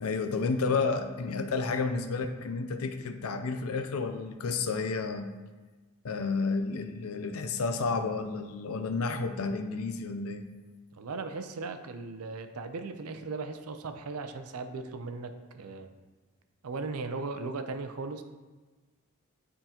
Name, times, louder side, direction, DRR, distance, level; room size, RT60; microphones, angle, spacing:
voice 1, 0.0-5.3 6.0-10.4, left 4 dB, 80° left, 8 dB, 0.5 m, -31 dB
voice 2, 10.9-15.9 16.6-18.2, right 3 dB, 85° right, 8 dB, 0.5 m, -37 dB
9.1 x 3.8 x 2.9 m, 1.2 s
head